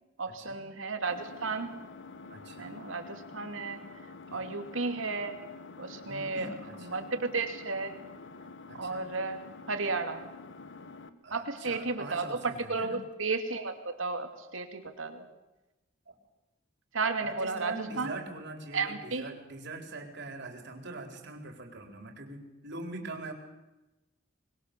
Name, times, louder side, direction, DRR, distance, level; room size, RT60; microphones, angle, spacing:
voice 1, 0.2-1.8 2.6-3.8 4.3-5.4 5.8-6.5 6.8-8.0 8.7-9.4 9.7-10.3 11.3-15.2 16.9-18.1 18.7-19.3, right 3 dB, 85° right, 7 dB, 2.6 m, -33 dB
Engine, 1.1-11.1, left 3 dB, 65° left, 1.4 m, -48 dB
voice 2, 2.3-2.8 4.3-4.5 6.0-7.0 8.7-9.1 11.2-13.0 16.1-16.2 17.2-23.3, right 2 dB, 60° right, 4 dB, 4.2 m, -43 dB
25.0 x 21.0 x 6.9 m, 0.99 s
head